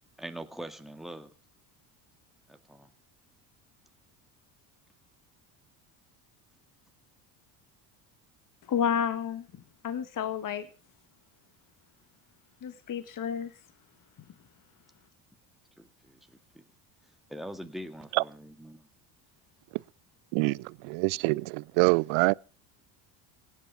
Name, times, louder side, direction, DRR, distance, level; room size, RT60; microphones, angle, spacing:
voice 1, 0.2-1.3 2.5-2.9 15.8-16.6 17.3-18.9, right 1 dB, ahead, 2.1 m, -43 dB
voice 2, 8.7-9.5 9.8-10.7 12.6-13.5, left 8 dB, 40° left, 1.6 m, -30 dB
voice 3, 20.3-22.3, right 27 dB, 75° right, 0.6 m, -25 dB
17.0 x 8.6 x 7.3 m
supercardioid pair, 85°, 48 cm